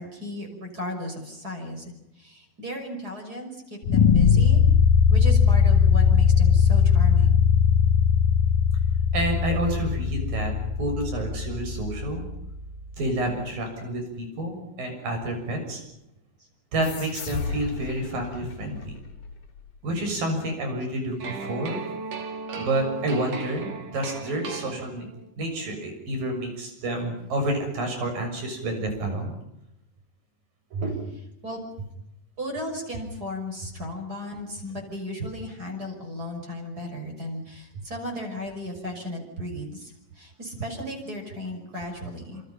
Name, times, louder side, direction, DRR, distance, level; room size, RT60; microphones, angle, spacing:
voice 1, 0.0-4.6 5.1-7.4 16.4-16.5 31.4-31.6 32.4-42.4, left 1 dB, 25° right, 2 dB, 6.3 m, -35 dB
sound 1, 3.8-12.9, left 7 dB, 85° left, 3.3 m, -20 dB
voice 2, 9.1-10.5 10.8-12.3 13.0-15.8 16.7-18.9 19.8-21.8 22.6-25.1 25.4-29.3 30.7-31.1, right 1 dB, 85° right, 4 dB, 8.3 m, -29 dB
sound 2, 16.8-20.0, left 3 dB, 60° left, 3.9 m, -36 dB
sound 3, 21.2-25.3, right 4 dB, 50° right, 3.4 m, -36 dB
27.5 x 27.5 x 5.7 m, 0.84 s
omnidirectional pair, 3.9 m